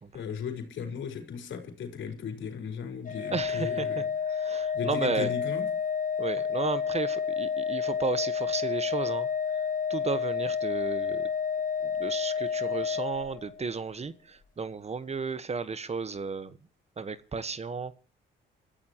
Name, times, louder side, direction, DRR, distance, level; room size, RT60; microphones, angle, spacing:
voice 1, 0.1-4.1 4.7-5.7, left 6 dB, 70° left, 4.6 m, -36 dB
Organ, 3.1-13.7, left 7 dB, 40° left, 2.0 m, -30 dB
voice 2, 3.3-3.9 4.4-5.3 6.2-9.3 9.9-11.2 12.0-14.1 14.6-16.5 17.0-17.9, right 5 dB, 30° right, 1.3 m, -33 dB
28.5 x 14.0 x 3.0 m
cardioid pair, 90°, 20 cm